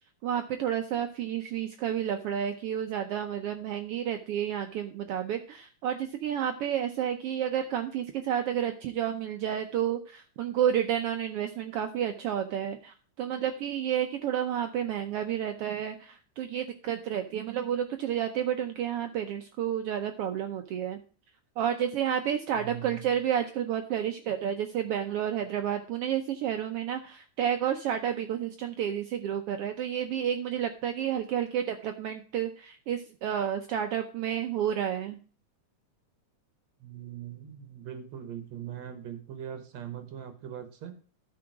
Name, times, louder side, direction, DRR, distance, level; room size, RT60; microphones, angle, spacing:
voice 1, 0.2-21.0 21.6-35.2, right 9 dB, 85° right, 6 dB, 1.3 m, -30 dB
voice 2, 22.5-23.1 36.8-41.0, right 10 dB, 65° right, 8 dB, 2.4 m, -41 dB
12.5 x 4.9 x 4.7 m, 0.38 s
omnidirectional pair, 3.5 m